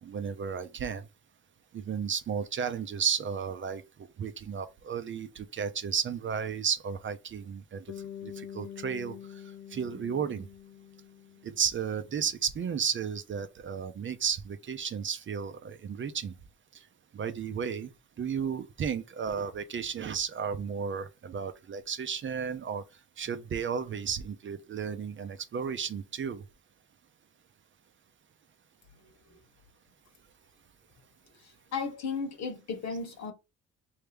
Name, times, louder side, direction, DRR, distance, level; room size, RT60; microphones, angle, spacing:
voice 1, 0.0-1.0 1.7-3.8 4.2-7.8 8.2-9.2 9.7-10.5 11.4-16.3 17.1-17.9 18.2-22.8 23.2-26.4, right 7 dB, 40° right, 0.6 m, -33 dB
Bass guitar, 7.9-12.1, left 9 dB, 90° left, 0.6 m, -46 dB
voice 2, 31.4-33.3, left 5 dB, 60° left, 1.2 m, -35 dB
3.3 x 2.7 x 3.4 m
cardioid pair, 90°, 30 cm